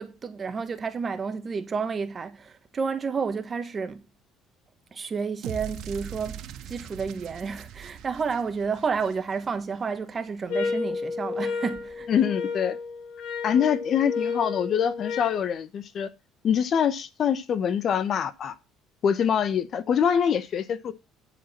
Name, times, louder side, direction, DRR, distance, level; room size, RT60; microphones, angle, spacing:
voice 1, 0.0-4.0 4.9-12.1, right 5 dB, 30° right, 1.4 m, -31 dB
sound 1, 5.4-9.7, right 9 dB, 65° right, 1.7 m, -41 dB
sound 2, 10.5-15.4, left 4 dB, 85° left, 2.4 m, -31 dB
voice 2, 12.1-12.8 13.4-16.1 16.4-18.5 19.0-20.9, left 8 dB, 50° left, 1.1 m, -24 dB
10.5 x 5.0 x 5.9 m
cardioid pair, 105°, 0 cm